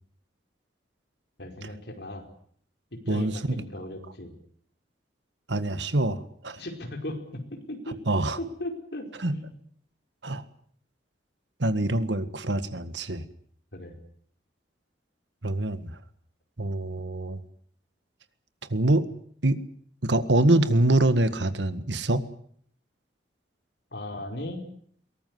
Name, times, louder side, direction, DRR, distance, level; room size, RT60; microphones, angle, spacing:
voice 1, 1.4-2.2 2.9-4.3 6.5-8.0 8.4-9.5 13.7-13.9 23.9-24.6, left 1 dB, 70° left, 4 dB, 4.9 m, -37 dB
voice 2, 5.5-6.6 8.1-8.4 9.2-9.4 10.2-10.4 11.6-13.3 15.4-16.0 16.6-17.4 18.7-19.1 19.4-19.6 20.0-22.2, right 1 dB, 90° right, 12 dB, 1.8 m, -24 dB
22.5 x 18.5 x 9.6 m, 0.63 s
head